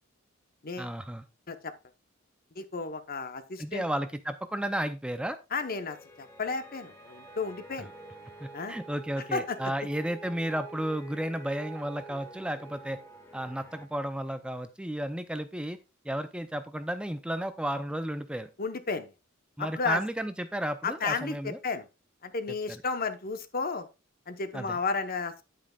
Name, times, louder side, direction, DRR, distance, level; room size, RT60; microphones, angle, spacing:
voice 1, 0.8-1.2 3.6-5.4 8.4-13.0 13.3-15.8 16.0-18.5 19.6-21.6 22.7-22.8 24.5-24.8, right 1 dB, 5° right, 0.5 m, -33 dB
voice 2, 2.6-3.8 5.5-7.9 8.5-8.8 9.3-9.6 18.6-19.1 19.6-20.0 20.8-21.9 22.2-23.9 24.3-25.5, left 4 dB, 45° left, 0.9 m, -33 dB
sound 1, 5.6-13.9, right 2 dB, 10° left, 1.4 m, -48 dB
9.6 x 8.5 x 2.3 m
head